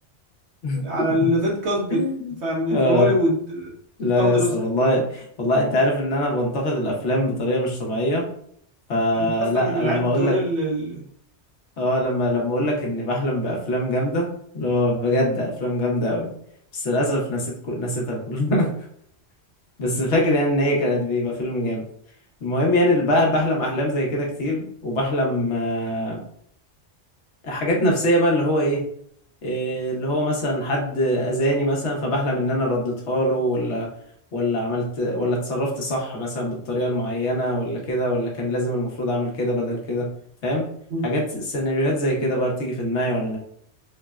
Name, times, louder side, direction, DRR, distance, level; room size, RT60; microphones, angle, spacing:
voice 1, 0.7-2.0 2.4-3.7 4.2-4.5 9.1-11.0 40.9-41.0, equal, 70° right, -4 dB, 1.3 m, -24 dB
voice 2, 1.9-2.3 2.7-3.1 4.0-8.2 8.9-10.4 11.8-14.3 14.5-16.3 16.7-18.7 19.8-21.8 22.4-26.2 27.4-28.8 29.4-33.9 34.3-40.1 40.4-40.6 41.0-43.4, left 1 dB, 75° left, -1 dB, 1.1 m, -23 dB
3.5 x 2.0 x 2.3 m, 0.67 s
omnidirectional pair, 1.2 m